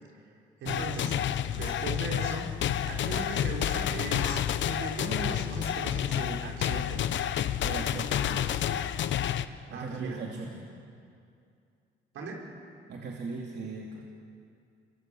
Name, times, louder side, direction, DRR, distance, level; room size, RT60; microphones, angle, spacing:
voice 1, 0.6-1.2 1.5-2.5 2.9-7.0 9.7-10.2 12.1-12.5, right 3 dB, 80° right, -1 dB, 5.4 m, -37 dB
sound 1, 0.7-9.5, left 10 dB, 70° left, 0.9 m, -30 dB
voice 2, 7.6-8.5 9.7-10.7 12.9-14.0, right 4 dB, 60° right, -2 dB, 2.8 m, -38 dB
26.5 x 21.5 x 7.7 m, 2.4 s
cardioid pair, 90°, 20 cm